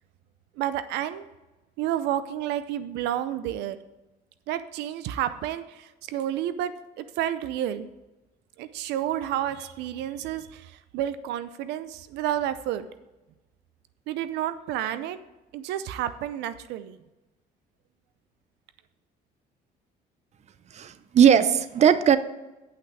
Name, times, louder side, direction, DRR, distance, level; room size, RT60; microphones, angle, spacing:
voice 1, 0.6-1.2 1.8-3.8 4.5-7.9 8.6-12.8 14.1-15.2 15.5-17.0, right 11 dB, 90° right, 13 dB, 0.6 m, -30 dB
voice 2, 20.7-22.2, right 8 dB, 40° right, 14 dB, 0.7 m, -18 dB
8.5 x 5.8 x 7.9 m, 1.1 s
cardioid pair, 110°, 17 cm